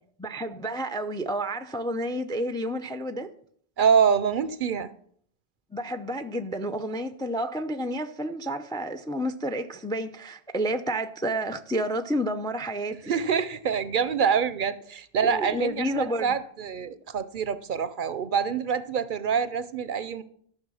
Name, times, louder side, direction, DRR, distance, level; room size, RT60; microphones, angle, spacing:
voice 1, 0.2-3.3 5.7-13.1 15.2-16.4, right 1 dB, 5° left, 0.3 m, -30 dB
voice 2, 3.8-4.9 13.1-20.2, right 7 dB, 60° right, 0.7 m, -26 dB
12.5 x 6.4 x 6.2 m
omnidirectional pair, 1.1 m